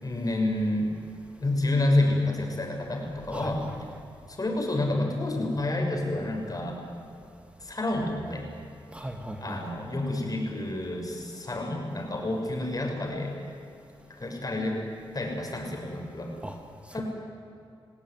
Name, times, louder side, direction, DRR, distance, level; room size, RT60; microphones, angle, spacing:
voice 1, 0.0-0.9 1.4-3.6 4.3-6.8 7.6-8.4 9.4-13.3 14.2-14.8 15.1-16.3 16.9-17.0, left 2 dB, 40° left, 1 dB, 6.6 m, -29 dB
voice 2, 3.3-4.0 8.9-9.6 16.4-16.6 16.8-17.0, right 1 dB, 10° right, 4 dB, 2.0 m, -38 dB
29.0 x 17.5 x 9.7 m, 2.6 s
cardioid pair, 70°, 10 cm